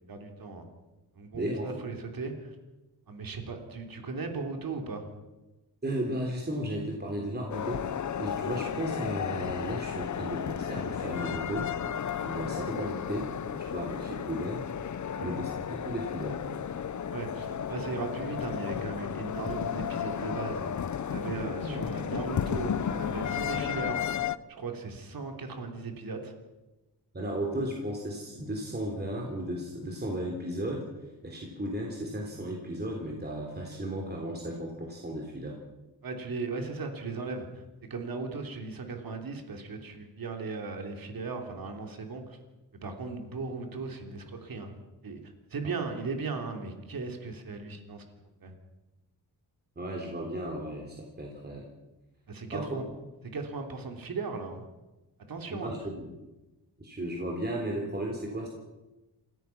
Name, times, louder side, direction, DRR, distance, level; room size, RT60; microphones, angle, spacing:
voice 1, 0.1-0.7 1.1-2.5 3.1-5.1 15.1-15.5 17.1-20.7 21.1-24.0 24.5-26.3 36.0-37.6 37.9-42.4 42.8-44.7 45.0-45.2 45.5-48.0 48.4-48.5 52.3-52.9 53.3-54.6 55.3-55.7, right 4 dB, 55° right, 4 dB, 3.3 m, -37 dB
voice 2, 1.3-1.7 5.8-7.9 8.2-11.7 12.2-13.3 13.6-14.6 15.0-16.4 21.6-21.8 27.1-30.9 31.2-35.6 49.8-51.7 52.5-52.8 55.5-56.1 56.8-58.5, right 1 dB, 25° right, 0 dB, 3.5 m, -35 dB
sound 1, 7.5-24.4, left 8 dB, 45° left, 0.7 m, -33 dB
28.0 x 16.5 x 5.9 m, 1.1 s
wide cardioid pair, 130°, 41 cm